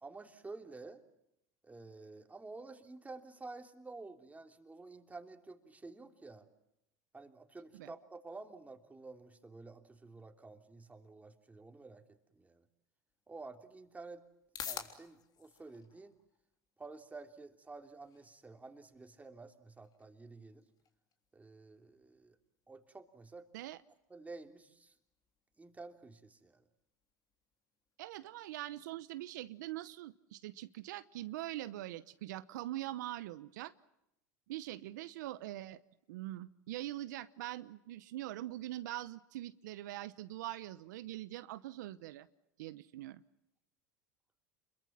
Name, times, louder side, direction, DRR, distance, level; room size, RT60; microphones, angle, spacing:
voice 1, 0.0-1.0 1.6-6.5 7.1-12.0 12.3-12.6 13.3-14.2 14.6-16.2 16.8-20.6 21.3-22.4 22.7-23.5 24.1-24.9 25.6-26.6, right 3 dB, 15° right, 6 dB, 3.2 m, -51 dB
sound 1, 13.1-30.0, left 8 dB, 45° left, 3.5 m, -55 dB
voice 2, 28.0-33.7 34.5-35.8 36.1-42.3 42.6-43.2, right 15 dB, 80° right, 14 dB, 0.9 m, -43 dB
28.0 x 22.5 x 7.4 m, 0.84 s
hypercardioid pair, 85°, 10 cm